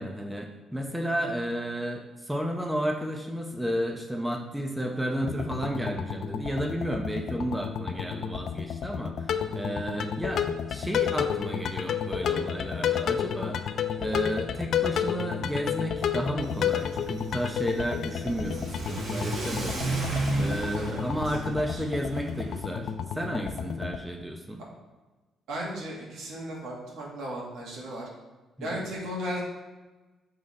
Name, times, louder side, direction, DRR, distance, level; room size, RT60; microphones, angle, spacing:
voice 1, 0.0-13.6 14.0-24.6 28.6-28.8, equal, 5° right, 2 dB, 0.7 m, -32 dB
sound 1, 5.2-24.0, left 8 dB, 70° left, 0.4 m, -31 dB
Car / Accelerating revving vroom, 16.4-22.6, right 2 dB, 60° right, 1.4 m, -34 dB
voice 2, 20.7-21.1 21.7-21.8 25.5-28.1 28.6-29.4, equal, 80° right, -3 dB, 1.6 m, -35 dB
6.1 x 3.7 x 4.2 m, 1.2 s
cardioid pair, 90°, 0 cm